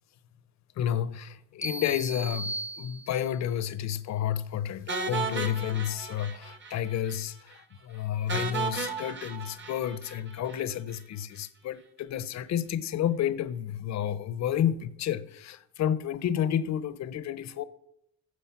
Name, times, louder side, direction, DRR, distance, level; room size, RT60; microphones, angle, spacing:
voice 1, 0.8-17.6, left 10 dB, 65° left, 0.8 m, -31 dB
sound 1, 1.6-3.5, right 2 dB, 10° left, 0.4 m, -37 dB
sound 2, 4.9-6.8 7.0-7.2 7.5-7.6 8.3-10.6, right 4 dB, 40° right, 1.5 m, -34 dB
14.5 x 5.0 x 5.8 m
cardioid pair, 90°, 30 cm